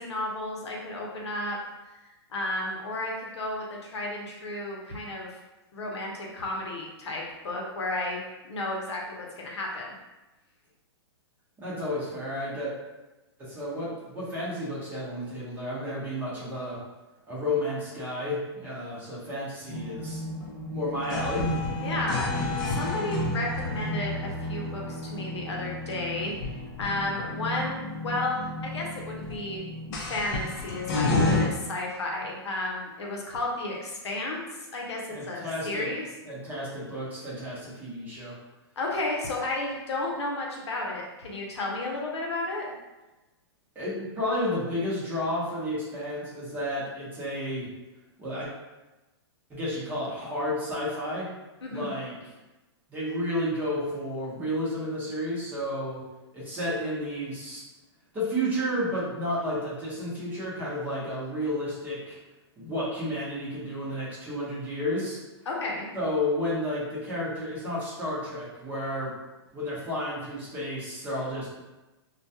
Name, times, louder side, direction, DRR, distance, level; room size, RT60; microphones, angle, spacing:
voice 1, 0.0-1.6 1.8-5.4 5.7-8.2 8.5-9.9 21.8-22.3 22.7-26.3 26.8-29.7 30.0-36.1 38.8-42.7 51.6-52.0 65.5-65.9, left 2 dB, 85° left, -1 dB, 0.7 m, -33 dB
voice 2, 11.6-12.7 13.4-16.8 17.3-20.2 20.7-21.4 35.1-35.9 36.2-38.3 43.7-47.7 48.2-48.5 49.5-51.3 51.7-52.3 52.9-56.0 56.3-57.6 58.1-62.2 62.6-65.2 65.9-69.1 69.5-71.6, left 1 dB, 10° right, -8 dB, 0.8 m, -31 dB
sound 1, 19.7-31.5, left 2 dB, 45° left, 0.6 m, -31 dB
2.2 x 2.2 x 2.7 m, 1.1 s
hypercardioid pair, 145°, 14 cm